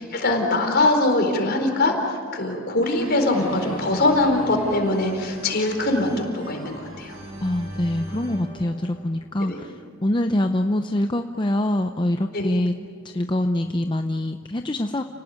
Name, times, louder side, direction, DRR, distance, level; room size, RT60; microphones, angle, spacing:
voice 1, 0.0-7.2 9.4-9.6 12.3-12.6, left 2 dB, 50° left, 3 dB, 4.4 m, -22 dB
sound 1, 2.8-9.8, equal, 80° right, 7.5 m, -39 dB
voice 2, 7.4-12.7 13.0-15.0, left 1 dB, 20° left, 6 dB, 0.7 m, -24 dB
30.0 x 18.5 x 9.5 m, 2.1 s
head